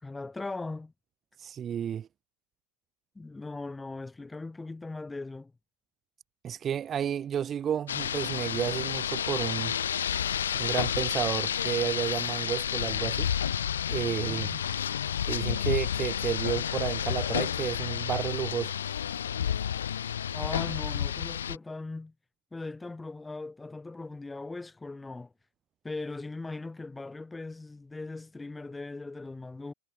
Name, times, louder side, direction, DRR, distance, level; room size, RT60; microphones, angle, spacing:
voice 1, 0.0-0.9 3.2-5.5 14.2-14.6 20.3-22.1 22.5-25.3 25.8-29.7, left 3 dB, 10° left, 1.9 m, -39 dB
voice 2, 1.4-2.1 6.4-9.7 10.5-13.3 13.9-14.5 15.2-18.7, right 9 dB, 25° right, 0.4 m, -31 dB
Rain, 7.9-21.6, left 9 dB, 85° left, 0.3 m, -30 dB
hypercardioid pair, 115°, 0 cm